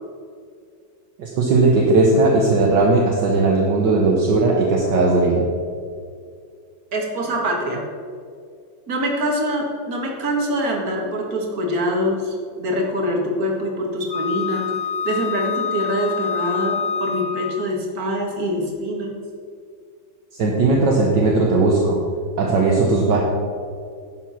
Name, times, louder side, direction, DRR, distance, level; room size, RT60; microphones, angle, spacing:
voice 1, 1.2-5.5 20.3-22.0 22.4-23.2, right 3 dB, 65° right, -2 dB, 1.8 m, -17 dB
voice 2, 6.9-7.8 8.9-14.7 15.0-19.2, equal, 50° right, 0 dB, 2.2 m, -24 dB
Wind instrument woodwind instrument, 14.1-17.7, left 7 dB, 60° left, 0.8 m, -26 dB
11.0 x 8.0 x 5.8 m, 2.2 s
omnidirectional pair, 2.1 m